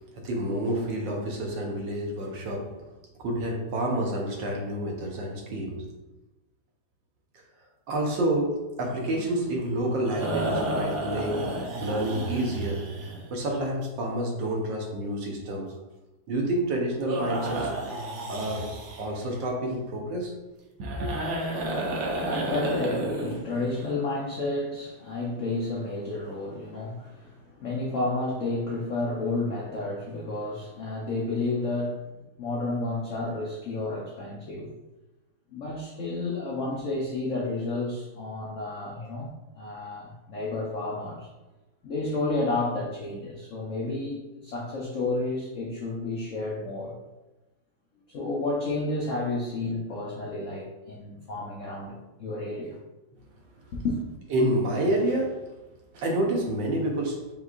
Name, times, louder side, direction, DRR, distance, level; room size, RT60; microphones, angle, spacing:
voice 1, 0.2-2.7 3.2-5.9 7.9-11.5 11.8-12.8 13.3-15.7 16.3-17.7 18.3-20.3 20.8-21.1 54.3-55.4 55.9-57.3, right 1 dB, 70° right, 0 dB, 1.5 m, -28 dB
sound 1, 8.8-13.6 17.1-19.3 20.8-23.9, right 1 dB, 85° right, 0.6 m, -32 dB
voice 2, 21.6-32.0 32.4-34.7 35.5-41.3 41.8-46.9 48.1-51.9 52.2-52.8 53.7-54.0, left 2 dB, 75° left, -4 dB, 0.7 m, -31 dB
5.4 x 3.2 x 2.4 m, 1.0 s
omnidirectional pair, 2.2 m